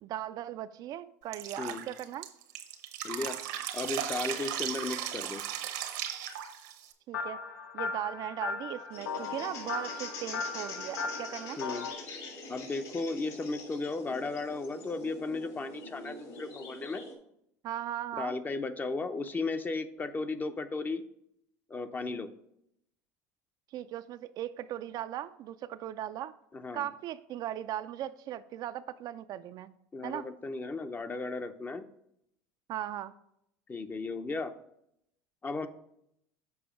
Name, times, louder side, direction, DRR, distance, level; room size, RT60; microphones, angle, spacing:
voice 1, 0.0-2.3 7.1-7.4 7.7-11.6 17.6-18.3 23.7-26.3 26.7-29.7 30.0-30.2 32.7-33.1, right 12 dB, 50° right, 12 dB, 0.4 m, -38 dB
Drip, 1.3-6.9, right 11 dB, 75° right, 1.0 m, -36 dB
voice 2, 3.0-3.4 3.7-5.4 11.6-11.9 12.5-17.0 18.1-21.0 21.7-22.3 26.5-26.9 29.9-31.9 33.7-34.5 35.4-35.7, left 3 dB, 20° left, 10 dB, 0.6 m, -35 dB
sound 1, 7.1-11.9, left 5 dB, 85° left, 0.8 m, -37 dB
sound 2, 8.9-17.1, left 2 dB, 60° left, 2.7 m, -44 dB
7.0 x 4.8 x 5.0 m, 0.76 s
supercardioid pair, 95°, 9 cm